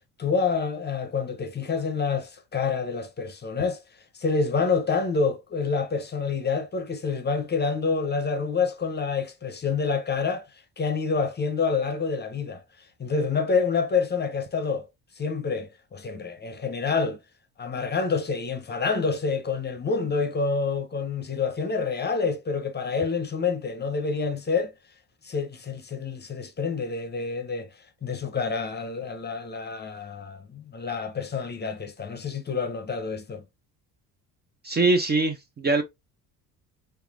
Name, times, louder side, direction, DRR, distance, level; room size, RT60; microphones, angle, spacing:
voice 1, 0.2-3.8 4.1-12.6 13.0-14.9 15.2-17.2 17.6-24.7 25.2-27.7 28.0-33.4, left 5 dB, 25° left, 0.7 m, -27 dB
voice 2, 34.6-35.8, right 3 dB, 25° right, 0.5 m, -22 dB
3.4 x 3.4 x 2.4 m
supercardioid pair, 90°, 41 cm